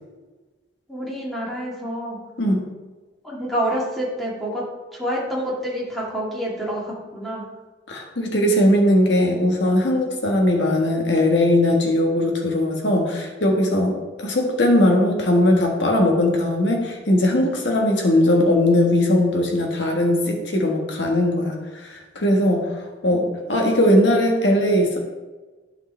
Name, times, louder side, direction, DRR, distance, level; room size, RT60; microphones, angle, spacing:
voice 1, 0.9-2.2 3.2-4.6 4.9-7.5, equal, ahead, -5 dB, 1.9 m, -27 dB
voice 2, 7.9-21.6 21.8-25.0, left 1 dB, 80° left, 1 dB, 1.6 m, -19 dB
11.5 x 5.0 x 3.4 m, 1.3 s
head